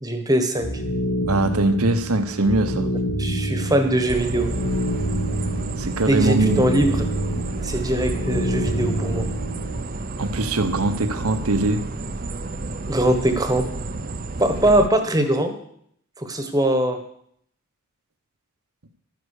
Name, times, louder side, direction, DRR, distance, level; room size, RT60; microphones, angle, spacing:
voice 1, 0.0-0.7 3.2-4.5 6.1-6.9 7.6-9.3 12.9-13.7 14.4-15.5 16.2-17.0, right 1 dB, 15° right, 7 dB, 1.3 m, -21 dB
sound 1, 0.5-9.8, equal, 65° left, 3.0 m, -27 dB
voice 2, 1.3-2.9 5.8-6.7 10.2-11.8, right 2 dB, 80° right, 9 dB, 1.2 m, -21 dB
sound 2, 4.1-14.9, right 2 dB, 40° right, 0.7 m, -31 dB
12.5 x 10.0 x 6.6 m, 0.68 s
head